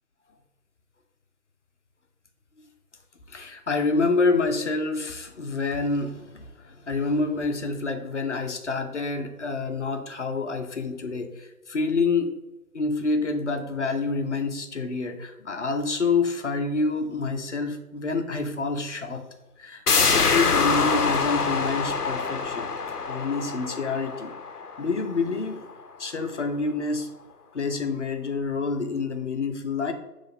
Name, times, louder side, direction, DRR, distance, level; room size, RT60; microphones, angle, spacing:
voice 1, 3.3-12.3 12.7-19.2 19.6-22.7 23.1-24.3 24.8-25.7 26.0-27.1 27.5-29.9, left 3 dB, 50° left, 6 dB, 0.8 m, -27 dB
sound 1, 19.9-25.3 25.7-25.8, left 5 dB, 85° left, 0.8 m, -25 dB
5.8 x 3.3 x 5.2 m, 1.0 s
figure-of-eight pair, 160°, 45 cm